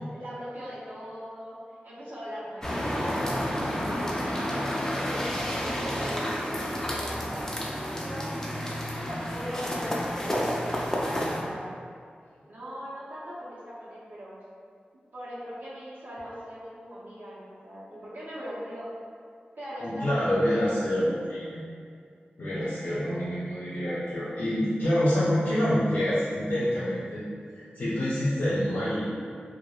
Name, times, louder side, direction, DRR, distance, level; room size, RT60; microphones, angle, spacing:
voice 1, 0.0-1.6 1.8-8.3 9.0-11.7 12.5-14.3 15.1-18.9 19.6-20.8 21.0-21.2 22.6-23.2, equal, 75° right, -10 dB, 0.6 m, -40 dB
sound 1, 2.6-11.4, equal, 15° left, 0.3 m, -30 dB
voice 2, 19.8-21.7 22.4-27.3 27.5-29.1, equal, 90° left, -11 dB, 0.6 m, -27 dB
2.3 x 2.1 x 2.8 m, 2.3 s
wide cardioid pair, 85°, 3 cm